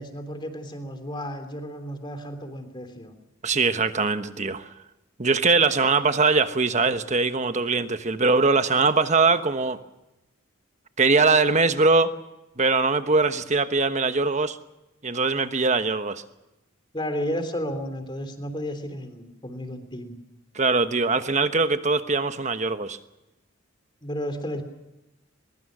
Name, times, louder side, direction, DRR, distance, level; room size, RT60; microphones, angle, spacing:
voice 1, 0.0-3.1 16.9-20.2 24.0-24.6, equal, 25° left, 7 dB, 3.2 m, -32 dB
voice 2, 3.4-4.7 5.2-9.8 11.0-12.1 12.6-14.6 15.0-16.2 20.5-23.0, right 4 dB, 35° right, 10 dB, 1.2 m, -22 dB
22.5 x 22.5 x 6.3 m, 0.97 s
head